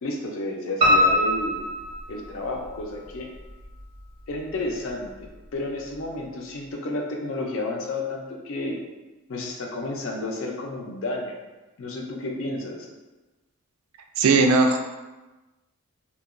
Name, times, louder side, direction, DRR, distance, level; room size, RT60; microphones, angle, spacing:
voice 1, 0.0-1.6 2.1-3.3 4.3-8.8 9.3-11.3 11.8-12.9, left 2 dB, 60° left, 1 dB, 0.4 m, -31 dB
Piano, 0.8-2.7 3.1-4.0 4.3-4.4 4.9-5.0 5.2-5.3, left 1 dB, 25° right, 0.5 m, -22 dB
voice 2, 14.2-14.8, right 3 dB, 80° right, 4 dB, 0.3 m, -18 dB
2.8 x 2.2 x 2.4 m, 1.1 s
head